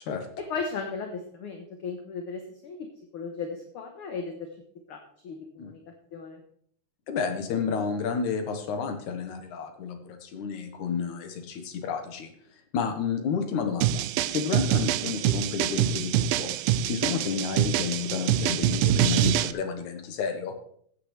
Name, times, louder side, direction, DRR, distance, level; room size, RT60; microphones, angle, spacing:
voice 1, 0.4-2.8 3.1-4.5 4.9-5.0 5.2-5.8 6.1-6.4, left 5 dB, 60° left, 4 dB, 1.7 m, -35 dB
voice 2, 7.1-12.3 12.7-14.0 14.3-16.5 16.8-20.6, left 6 dB, 85° left, 5 dB, 2.8 m, -31 dB
sound 1, 13.8-19.5, right 12 dB, 80° right, 1.5 m, -25 dB
14.5 x 9.7 x 3.3 m, 0.64 s
omnidirectional pair, 3.3 m